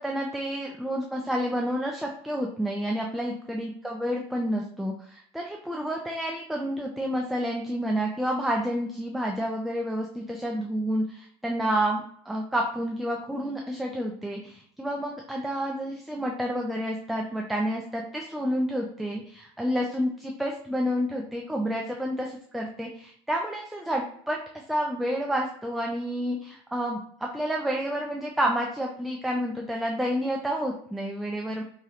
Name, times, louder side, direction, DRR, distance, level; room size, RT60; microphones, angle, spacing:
voice 1, 0.0-24.4 24.7-31.6, equal, ahead, 0 dB, 0.4 m, -29 dB
4.2 x 3.0 x 2.5 m, 0.64 s
cardioid pair, 135°, 13 cm